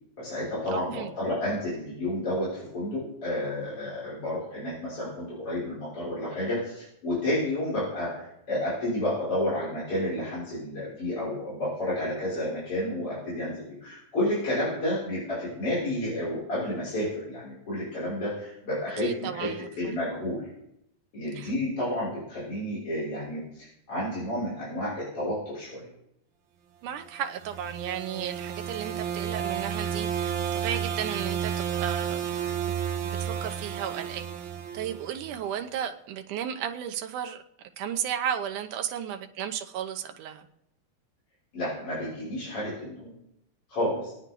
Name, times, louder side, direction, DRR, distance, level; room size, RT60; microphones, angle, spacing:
voice 1, 0.2-19.5 19.8-20.5 21.1-25.9 41.5-43.2 43.7-44.1, left 1 dB, 45° left, -10 dB, 7.2 m, -31 dB
voice 2, 0.7-1.1 19.0-19.9 21.4-21.5 26.8-32.2 32.7-32.8 33.1-34.3 34.7-37.4 37.8-40.5, right 9 dB, 85° right, 7 dB, 2.5 m, -34 dB
sound 1, 27.2-35.4, right 8 dB, 70° right, 2.8 m, -32 dB
24.0 x 9.5 x 3.9 m, 0.80 s
omnidirectional pair, 3.5 m